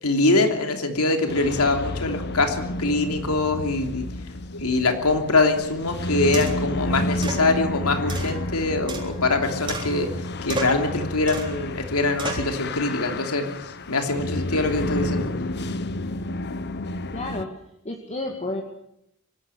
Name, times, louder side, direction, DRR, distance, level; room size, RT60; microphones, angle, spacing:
voice 1, 0.0-4.1 4.5-13.5 13.9-15.3, left 2 dB, 90° left, 5 dB, 3.1 m, -23 dB
sound 1, 1.3-17.5, left 1 dB, 50° left, 1.0 m, -31 dB
sound 2, 5.6-5.7 6.3-6.7 7.2-7.5 8.1-9.4 9.7-10.2 10.5-10.9 11.3-11.6 12.2-12.5, right 2 dB, 25° right, 4.0 m, -32 dB
voice 2, 17.1-18.6, left 2 dB, 30° left, 2 dB, 2.2 m, -31 dB
25.0 x 12.5 x 10.0 m, 0.78 s
head